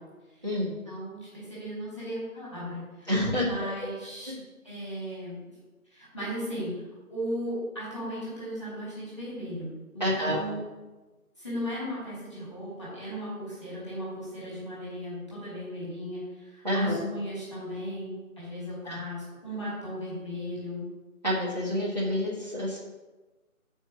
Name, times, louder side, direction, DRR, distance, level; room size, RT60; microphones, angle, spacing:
voice 1, 0.9-3.1 3.4-4.3 4.6-5.4 5.9-6.7 7.1-10.6 11.4-20.8, equal, 20° left, -8 dB, 2.0 m, -36 dB
voice 2, 3.1-3.5 4.3-4.4 10.0-10.4 16.6-17.0 18.8-19.0 21.2-22.8, left 1 dB, 30° right, -7 dB, 1.4 m, -28 dB
6.5 x 4.6 x 6.0 m, 1.2 s
figure-of-eight pair, 180°, 44 cm